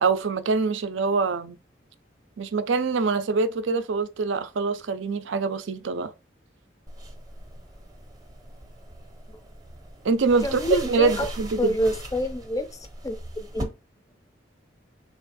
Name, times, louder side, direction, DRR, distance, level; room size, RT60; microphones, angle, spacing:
voice 1, 0.0-1.6 2.4-6.1 10.0-10.6 10.8-11.8, right 4 dB, 80° right, 0.5 m, -24 dB
sound 1, 6.9-13.6, right 1 dB, 20° right, 0.7 m, -39 dB
voice 2, 10.4-11.3 11.6-13.7, equal, 20° left, 0.4 m, -28 dB
3.5 x 2.5 x 4.1 m
head